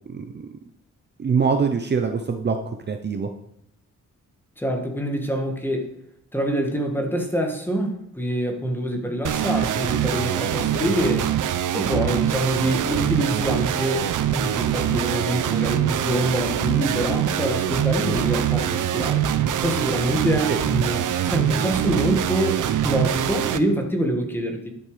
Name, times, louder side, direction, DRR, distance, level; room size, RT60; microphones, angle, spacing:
voice 1, 0.1-0.5 1.2-2.6 2.9-3.3 20.5-20.6, right 5 dB, 35° right, 6 dB, 0.8 m, -23 dB
voice 2, 4.6-5.9 6.3-11.3 11.7-19.2 19.6-24.7, right 1 dB, 5° left, 2 dB, 2.0 m, -25 dB
sound 1, 9.2-23.6, right 10 dB, 90° right, 0.8 m, -24 dB
11.5 x 9.2 x 5.1 m, 0.72 s
wide cardioid pair, 160°, 30 cm